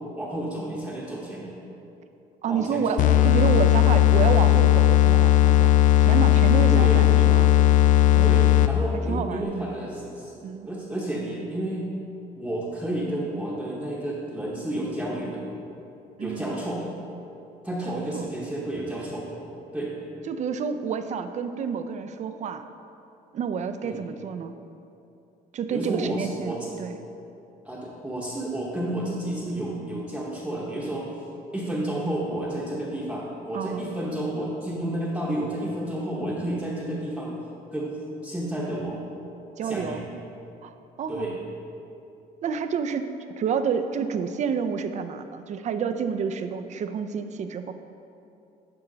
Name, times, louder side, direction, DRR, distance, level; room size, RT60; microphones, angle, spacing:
voice 1, 0.2-1.6 2.5-3.0 6.7-7.1 8.2-10.3 10.6-11.9 12.4-15.5 16.2-16.8 17.6-19.3 19.7-20.0 23.8-24.0 25.7-26.8 27.6-31.1 31.5-37.3 37.7-39.0 39.6-40.0 41.1-41.4, right 1 dB, 5° right, -6 dB, 0.9 m, -31 dB
voice 2, 2.4-7.5 8.2-8.4 9.1-9.5 10.4-10.7 16.2-16.5 17.9-18.3 20.3-22.7 23.3-24.5 25.5-27.0 33.5-33.8 39.6-40.0 40.6-41.3 42.4-47.7, right 6 dB, 45° right, 9 dB, 0.4 m, -29 dB
sound 1, 3.0-8.9, left 14 dB, 50° left, 0.4 m, -17 dB
10.5 x 4.4 x 3.9 m, 2.8 s
cardioid pair, 110°, 17 cm